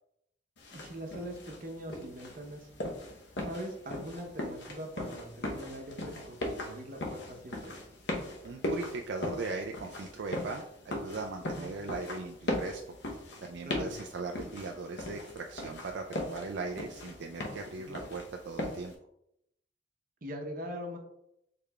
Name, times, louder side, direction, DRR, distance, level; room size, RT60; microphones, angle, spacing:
sound 1, 0.6-18.9, left 1 dB, 70° left, 0.9 m, -39 dB
voice 1, 0.7-2.7 3.4-7.8 11.4-11.7 13.6-13.9 17.8-18.0 20.2-21.0, equal, 50° right, 2 dB, 0.8 m, -42 dB
voice 2, 8.4-13.0 13.4-18.9, right 3 dB, 70° right, 3 dB, 0.4 m, -39 dB
6.6 x 3.3 x 2.3 m, 0.79 s
head